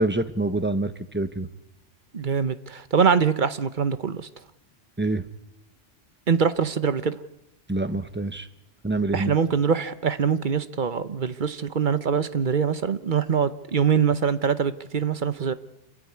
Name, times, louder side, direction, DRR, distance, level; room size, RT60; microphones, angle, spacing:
voice 1, 0.0-1.5 5.0-5.2 7.7-8.5 8.8-9.3, right 2 dB, 10° right, 11 dB, 1.0 m, -26 dB
voice 2, 2.1-4.3 6.3-7.2 9.1-15.5, right 6 dB, 45° right, 13 dB, 1.0 m, -23 dB
27.0 x 14.0 x 9.6 m, 0.95 s
omnidirectional pair, 1.3 m